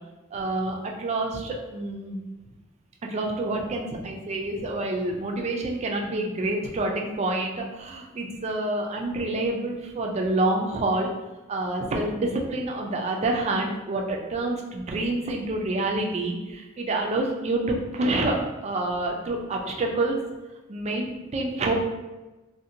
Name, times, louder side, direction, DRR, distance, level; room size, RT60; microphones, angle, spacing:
voice 1, 0.3-2.2 3.1-11.1 11.5-18.4 18.6-20.2 20.7-21.7, right 2 dB, 35° right, 1 dB, 0.3 m, -27 dB
2.6 x 2.1 x 2.7 m, 1.1 s
head